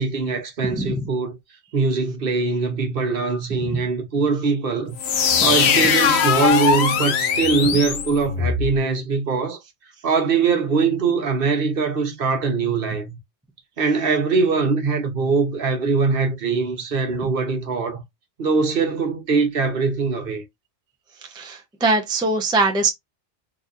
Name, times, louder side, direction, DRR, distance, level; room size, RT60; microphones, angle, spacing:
voice 1, 0.0-1.4 1.7-5.0 5.4-9.6 10.0-13.2 13.8-18.0 18.4-20.4, right 4 dB, 55° right, 1.0 m, -22 dB
sound 1, 5.0-8.8, left 7 dB, 65° left, 0.9 m, -20 dB
voice 2, 21.3-22.9, right 3 dB, 5° right, 0.4 m, -21 dB
4.0 x 2.8 x 2.5 m
omnidirectional pair, 1.2 m